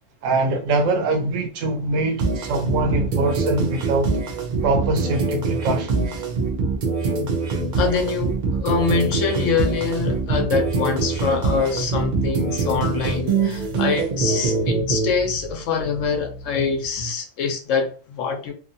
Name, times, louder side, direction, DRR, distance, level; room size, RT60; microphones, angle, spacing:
voice 1, 0.2-4.2 4.6-6.2, right 2 dB, 85° right, 1.0 m, -23 dB
sound 1, 2.2-15.1, right 4 dB, 55° right, 0.6 m, -24 dB
sound 2, 7.6-17.1, right 1 dB, 40° left, 0.5 m, -36 dB
voice 2, 7.7-18.5, left 5 dB, 80° left, 1.0 m, -24 dB
2.9 x 2.2 x 2.6 m
omnidirectional pair, 1.3 m